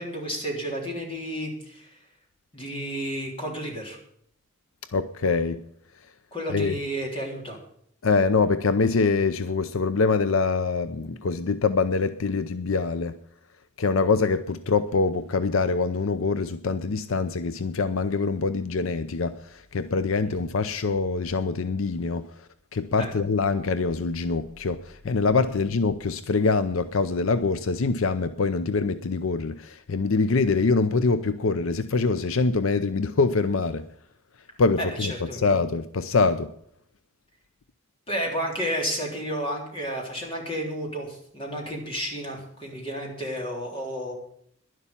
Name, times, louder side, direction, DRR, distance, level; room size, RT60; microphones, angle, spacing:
voice 1, 0.0-2.0 2.5-4.0 6.3-7.6 20.2-20.3 23.0-23.1 25.4-25.5 34.8-35.4 38.1-44.1, equal, 25° left, 0 dB, 3.6 m, -31 dB
voice 2, 4.9-5.6 6.5-6.7 8.0-13.2 13.8-33.8 34.6-36.5, left 4 dB, 70° left, 12 dB, 0.6 m, -24 dB
11.0 x 11.0 x 7.2 m, 0.68 s
head